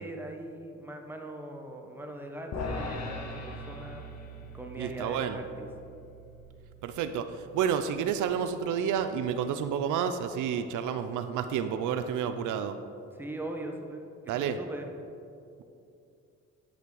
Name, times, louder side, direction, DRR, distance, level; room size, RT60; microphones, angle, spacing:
voice 1, 0.0-4.0 4.5-5.7 13.1-14.0 14.6-14.9, right 1 dB, 5° right, 2 dB, 1.0 m, -40 dB
sound 1, 2.5-8.9, left 2 dB, 60° left, 1.2 m, -41 dB
voice 2, 4.8-5.4 6.8-12.8 14.3-14.6, right 8 dB, 80° right, 9 dB, 0.5 m, -30 dB
10.5 x 5.7 x 3.9 m, 2.6 s
cardioid pair, 90°, 30 cm